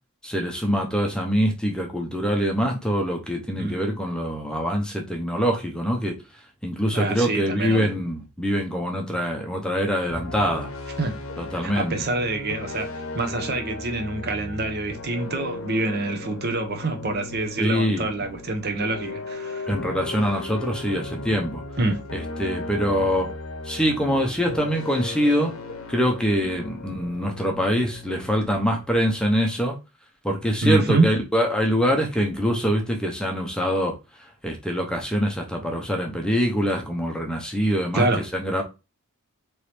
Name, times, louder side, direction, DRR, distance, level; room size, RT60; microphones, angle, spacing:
voice 1, 0.2-6.2 6.6-10.7 11.4-12.1 17.6-18.1 19.7-21.6 22.1-23.3 23.6-25.5 25.9-29.8 30.2-33.9 34.4-38.6, equal, 5° left, 0.7 m, -24 dB
voice 2, 6.9-7.9 11.0-11.1 11.6-12.9 13.1-19.7 21.8-22.0 30.6-31.1 37.9-38.2, right 2 dB, 45° right, 0.7 m, -26 dB
sound 1, 10.1-29.3, left 3 dB, 65° left, 0.8 m, -36 dB
4.4 x 3.1 x 3.3 m
head